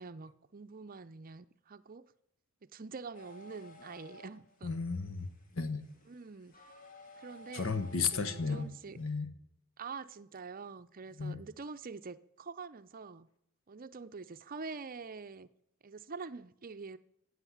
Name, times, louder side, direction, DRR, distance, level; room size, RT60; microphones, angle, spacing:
voice 1, 0.0-2.1 2.6-4.8 6.1-6.6 7.2-9.0 9.8-13.3 13.7-15.5 15.8-17.0, right 4 dB, 45° right, 13 dB, 0.6 m, -46 dB
sound 1, 3.1-9.1, left 1 dB, 40° left, 2.4 m, -55 dB
voice 2, 4.6-5.8 7.5-8.7 9.0-9.3 11.2-11.4, left 4 dB, 70° left, 11 dB, 1.4 m, -34 dB
15.5 x 8.0 x 10.0 m, 0.76 s
head